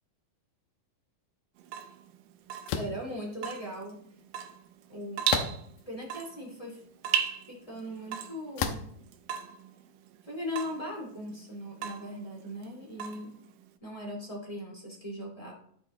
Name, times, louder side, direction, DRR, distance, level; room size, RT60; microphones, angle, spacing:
Water tap faucet / Drip, 1.6-13.8, right 9 dB, 75° right, 2.3 m, -37 dB
sound 1, 2.7-3.0 5.3-5.8 6.5-6.6 8.6-9.0, left 7 dB, 90° left, 2.6 m, -31 dB
voice 1, 2.7-4.0 4.9-5.3 5.9-6.8 7.5-8.8 10.2-13.3 13.8-15.5, left 1 dB, 10° left, -3 dB, 1.8 m, -39 dB
14.0 x 4.8 x 3.7 m, 0.68 s
omnidirectional pair, 4.2 m